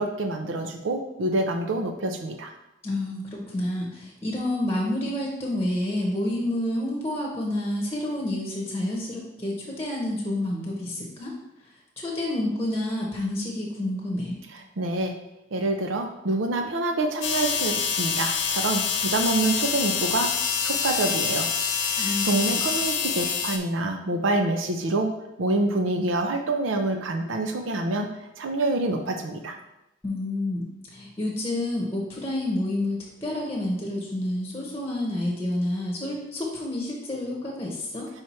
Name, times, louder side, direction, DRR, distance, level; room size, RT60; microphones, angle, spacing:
voice 1, 0.0-2.5 14.5-15.1 15.5-20.3 20.6-21.5 21.8-25.1 25.4-28.1 28.4-29.6, right 2 dB, 85° right, 5 dB, 0.6 m, -26 dB
voice 2, 2.8-11.3 12.0-14.4 22.0-22.6 30.0-38.1, left 1 dB, 15° left, -3 dB, 1.0 m, -29 dB
sound 1, 17.2-23.6, left 6 dB, 75° left, 0.7 m, -26 dB
4.9 x 4.4 x 4.3 m, 0.90 s
head